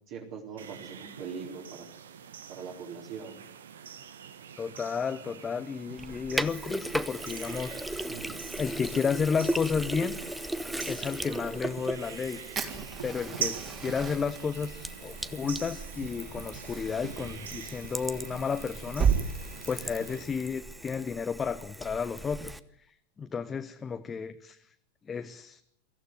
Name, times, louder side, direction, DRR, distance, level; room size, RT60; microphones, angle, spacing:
voice 1, 0.1-1.9 2.5-3.4 7.9-8.4, right 6 dB, 45° right, -1 dB, 4.3 m, -41 dB
sound 1, 0.6-20.2, right 7 dB, 65° right, 1.6 m, -44 dB
voice 2, 4.6-7.8 8.6-10.2 10.9-12.4 13.0-19.1 19.7-22.5 23.2-24.6 25.1-25.6, left 6 dB, 20° left, 8 dB, 1.0 m, -32 dB
Sink (filling or washing), 6.0-22.6, right 1 dB, 5° right, 1.0 m, -38 dB
Fire, 12.5-19.2, right 7 dB, 25° right, 3.5 m, -34 dB
24.0 x 15.0 x 9.6 m, 0.69 s
figure-of-eight pair, 90°, 0 cm